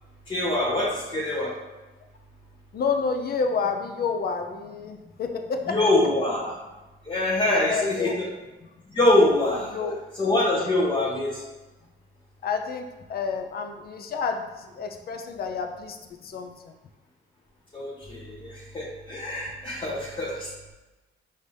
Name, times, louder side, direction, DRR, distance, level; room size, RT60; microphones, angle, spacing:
voice 1, 0.3-1.5 5.7-6.5 7.0-8.3 8.9-9.8 10.2-11.4 17.7-20.5, left 1 dB, 25° left, -5 dB, 0.8 m, -24 dB
voice 2, 2.7-5.8 7.5-8.2 9.6-10.0 12.4-16.0 16.2-16.7, left 5 dB, 50° left, 5 dB, 0.6 m, -29 dB
5.2 x 2.7 x 3.3 m, 1.1 s
cardioid pair, 90°, 20 cm